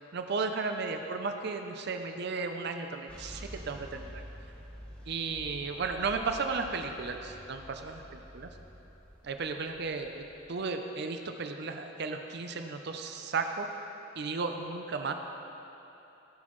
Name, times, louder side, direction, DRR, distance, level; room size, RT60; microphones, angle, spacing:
voice 1, 0.1-4.2 5.1-8.0 8.3-8.5 9.2-13.7 14.2-15.1, right 4 dB, 60° right, 5 dB, 0.5 m, -34 dB
sound 1, 3.1-10.5, equal, 5° left, 1.2 m, -49 dB
15.5 x 6.2 x 3.1 m, 3.0 s
head